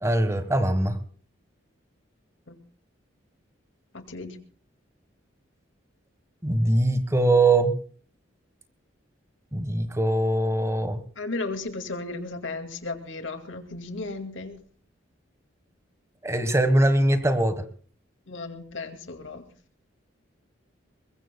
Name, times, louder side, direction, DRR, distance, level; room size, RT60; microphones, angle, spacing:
voice 1, 0.0-1.0 6.4-7.8 9.5-11.0 16.2-17.7, right 2 dB, 15° right, 10 dB, 1.5 m, -22 dB
voice 2, 3.9-4.4 11.2-14.6 18.3-19.4, left 3 dB, 80° left, 8 dB, 2.3 m, -35 dB
22.5 x 21.5 x 2.3 m, 0.42 s
head